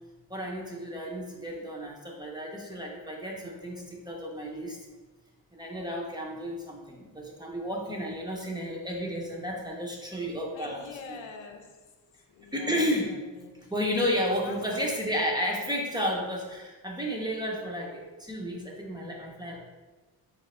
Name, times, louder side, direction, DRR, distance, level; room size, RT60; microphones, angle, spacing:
voice 1, 0.3-4.8 5.5-11.2 12.5-13.1 13.7-19.6, equal, 10° right, 0.5 m, -32 dB
voice 2, 10.5-11.9 12.3-13.7 14.4-15.1, left 5 dB, 85° left, 0.7 m, -45 dB
4.1 x 2.9 x 4.1 m
cardioid pair, 140°, 46 cm